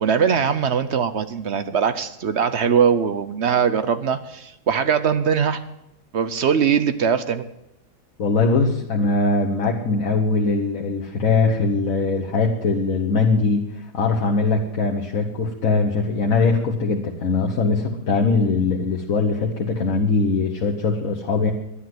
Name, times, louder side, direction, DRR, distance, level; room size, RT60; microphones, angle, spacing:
voice 1, 0.0-5.6 6.1-7.5, right 7 dB, 55° right, 12 dB, 0.8 m, -21 dB
voice 2, 8.2-21.5, left 3 dB, 60° left, 0 dB, 1.5 m, -21 dB
11.5 x 10.0 x 7.7 m, 0.85 s
omnidirectional pair, 1.6 m